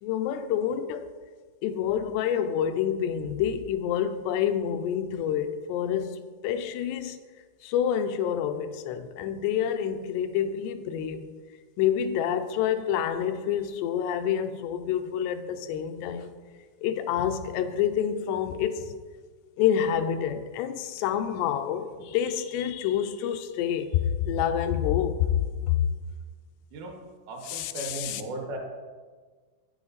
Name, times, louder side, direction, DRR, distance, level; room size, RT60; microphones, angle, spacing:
voice 1, 0.0-1.0 1.6-7.2 7.6-11.3 11.8-16.4 16.8-18.9 19.6-25.9 27.5-28.2, left 9 dB, 85° left, 2.7 m, -28 dB
voice 2, 26.7-27.0 27.3-28.6, right 2 dB, 70° right, 3.0 m, -36 dB
9.4 x 9.2 x 3.9 m
omnidirectional pair, 4.8 m